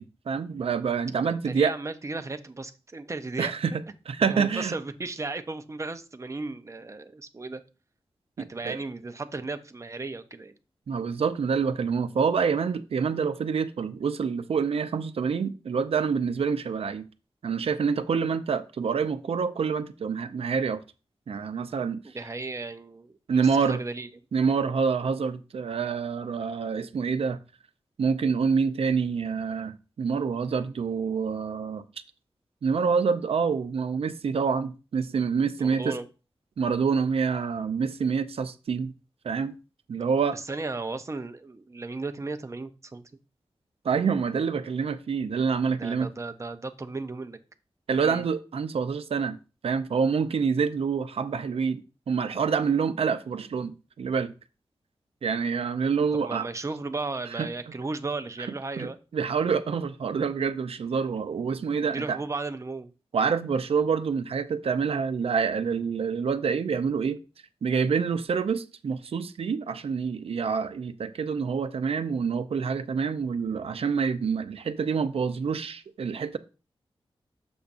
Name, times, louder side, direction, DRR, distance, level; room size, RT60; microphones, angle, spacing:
voice 1, 0.0-1.7 3.4-4.7 8.4-8.8 10.9-17.1 17.4-20.8 21.3-22.0 23.3-23.8 24.3-27.4 28.0-31.8 32.6-36.0 36.6-38.9 39.2-39.6 39.9-40.4 43.8-46.1 47.9-49.4 49.6-51.8 52.1-54.3 55.2-56.5 57.4-57.5 58.8-62.2 63.1-67.2 67.6-76.4, right 6 dB, 75° right, 0.6 m, -27 dB
voice 2, 1.3-3.5 4.3-7.6 8.4-10.5 22.0-24.1 35.6-36.1 40.3-43.0 45.8-47.4 48.0-48.3 56.2-59.0 61.7-62.9, right 3 dB, 30° right, 0.6 m, -35 dB
7.0 x 6.8 x 2.6 m
wide cardioid pair, 125°, 10 cm